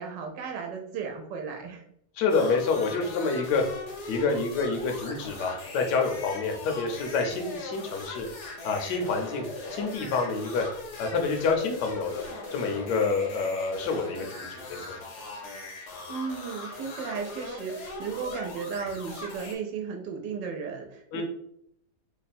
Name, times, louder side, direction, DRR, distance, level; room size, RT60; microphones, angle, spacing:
voice 1, 0.0-1.8 16.1-21.2, right 6 dB, 85° right, 2 dB, 1.2 m, -35 dB
voice 2, 2.2-3.6 4.1-8.3 8.6-9.5 9.7-10.6 11.0-12.2 12.5-15.0 21.1-21.2, left 4 dB, 75° left, 3 dB, 1.2 m, -27 dB
sound 1, 2.3-19.5, left 2 dB, 55° left, 0.8 m, -40 dB
3.3 x 2.1 x 4.1 m, 0.72 s
omnidirectional pair, 1.9 m